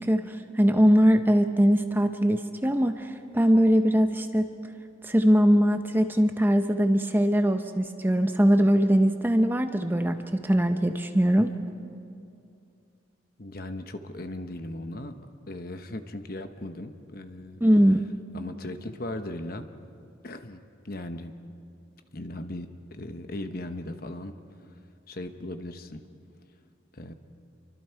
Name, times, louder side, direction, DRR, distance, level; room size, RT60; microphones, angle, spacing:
voice 1, 0.0-4.5 5.0-11.5 17.6-18.0, equal, 10° right, 7 dB, 0.7 m, -21 dB
voice 2, 13.4-15.1 15.5-17.6 18.3-19.7 20.2-21.3 22.1-24.3 24.6-24.8 25.1-26.0 26.9-27.1, left 1 dB, 50° left, 8 dB, 1.1 m, -37 dB
29.0 x 24.0 x 4.7 m, 2.5 s
head